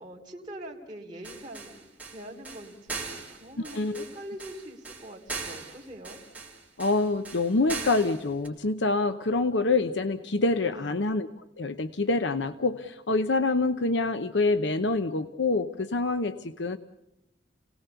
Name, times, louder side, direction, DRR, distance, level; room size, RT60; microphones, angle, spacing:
voice 1, 0.0-6.2 10.6-11.1, right 1 dB, 25° right, -3 dB, 3.1 m, -44 dB
sound 1, 1.2-8.5, right 4 dB, 10° right, 3.1 m, -40 dB
voice 2, 3.7-4.0 6.8-11.3 11.6-16.8, left 3 dB, 75° left, 10 dB, 0.8 m, -26 dB
30.0 x 18.5 x 7.0 m, 0.89 s
head